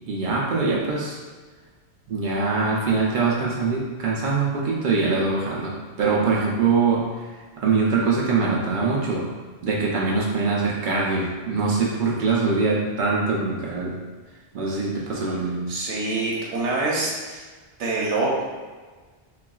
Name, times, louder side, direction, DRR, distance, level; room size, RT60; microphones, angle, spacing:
voice 1, 0.1-1.2 2.1-7.0 7.6-9.3 9.6-14.0 14.5-15.7, right 4 dB, 55° right, -4 dB, 0.6 m, -23 dB
voice 2, 15.7-17.4 17.8-18.4, right 2 dB, 85° right, -4 dB, 0.9 m, -25 dB
3.7 x 2.3 x 2.2 m, 1.4 s
omnidirectional pair, 1.2 m